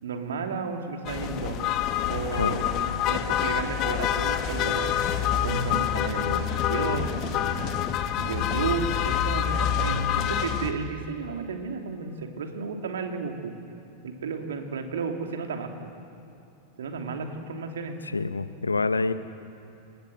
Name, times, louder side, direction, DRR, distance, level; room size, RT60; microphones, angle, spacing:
voice 1, 0.0-1.6 2.1-5.0 5.4-13.5 14.0-15.9 16.8-17.9, right 5 dB, 65° right, 4 dB, 3.0 m, -33 dB
sound 1, 1.1-10.7, left 9 dB, 40° left, 1.7 m, -27 dB
voice 2, 18.1-19.1, left 3 dB, 80° left, 14 dB, 1.0 m, -26 dB
29.5 x 19.0 x 8.0 m, 2.9 s
figure-of-eight pair, 90°, 0 cm